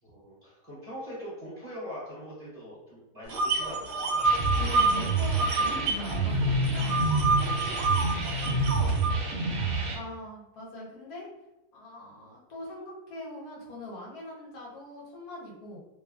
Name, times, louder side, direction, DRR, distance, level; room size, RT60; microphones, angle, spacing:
voice 1, 0.0-4.2 7.3-7.9, equal, 25° right, -10 dB, 1.4 m, -42 dB
sound 1, 3.3-6.1 6.4-9.1, right 3 dB, 90° right, 1.3 m, -27 dB
sound 2, 4.2-10.0, right 2 dB, 65° right, 0.8 m, -28 dB
voice 2, 4.6-7.0 7.8-7.9 8.7-8.9 9.9-11.3 11.7-15.8, left 1 dB, 70° left, -4 dB, 1.2 m, -42 dB
3.0 x 2.2 x 2.3 m, 0.94 s
omnidirectional pair, 1.8 m